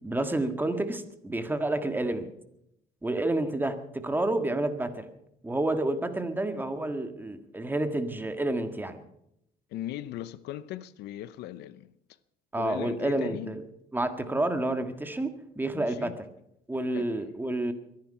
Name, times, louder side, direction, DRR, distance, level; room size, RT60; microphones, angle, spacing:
voice 1, 0.0-2.3 3.0-5.1 5.4-9.0 12.5-13.6 13.9-16.1 16.7-17.7, right 2 dB, 10° right, 1.7 m, -29 dB
voice 2, 9.7-11.9 12.6-13.6 15.7-16.2 16.9-17.2, left 13 dB, 85° left, 0.7 m, -38 dB
23.0 x 10.5 x 5.6 m
cardioid pair, 110°, 17 cm